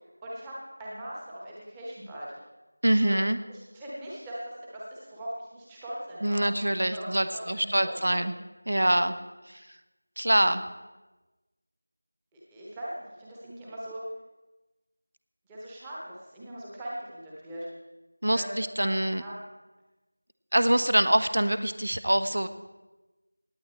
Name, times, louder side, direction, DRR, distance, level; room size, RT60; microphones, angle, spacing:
voice 1, 0.2-2.3 3.0-3.2 3.5-6.5 6.9-8.2 10.2-10.5 12.3-14.0 15.5-17.7 18.3-18.9 19.2-19.4, right 1 dB, 5° right, -6 dB, 1.0 m, -40 dB
voice 2, 2.8-3.4 6.2-8.3 8.7-9.1 10.2-10.6 18.2-19.2 20.5-22.5, right 1 dB, 70° right, 11 dB, 0.8 m, -24 dB
18.0 x 8.9 x 4.3 m, 1.1 s
figure-of-eight pair, 180°, 0 cm